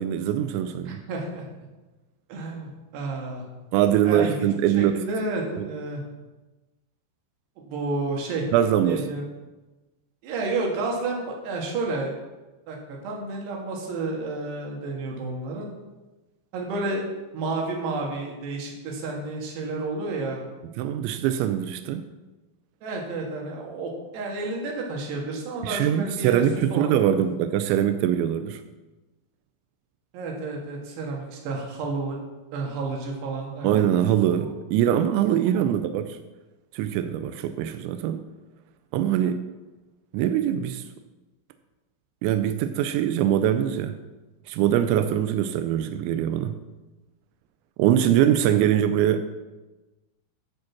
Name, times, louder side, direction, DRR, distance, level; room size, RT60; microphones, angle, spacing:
voice 1, 0.0-1.0 3.7-4.9 5.6-5.7 8.5-9.0 20.8-22.0 25.6-28.6 33.6-36.2 36.7-38.2 38.9-39.4 40.1-40.8 42.2-43.9 44.5-46.5 47.8-49.2, right 10 dB, 85° right, 8 dB, 2.6 m, -23 dB
voice 2, 0.9-1.4 2.3-3.4 4.0-6.0 7.6-8.5 8.8-9.2 10.2-12.2 12.7-15.7 16.5-17.0 17.3-20.4 22.8-26.5 26.7-27.2 30.1-32.2 32.5-33.9 34.4-34.5 34.9-35.0 35.3-35.7, right 3 dB, 65° right, -1 dB, 3.6 m, -31 dB
14.5 x 5.3 x 5.8 m, 1.1 s
omnidirectional pair, 5.8 m